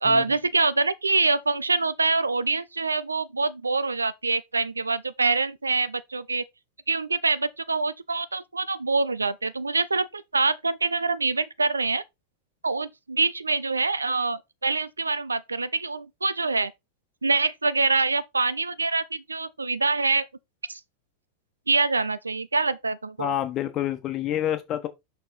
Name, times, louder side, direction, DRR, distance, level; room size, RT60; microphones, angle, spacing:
voice 1, 0.0-6.4 6.9-12.0 12.6-16.7 17.2-20.3 20.7-20.8 21.7-23.3, right 3 dB, 80° right, 0.5 m, -25 dB
voice 2, 23.2-24.9, left 11 dB, 35° left, 1.2 m, -28 dB
6.2 x 4.7 x 4.1 m
figure-of-eight pair, 90°, 0 cm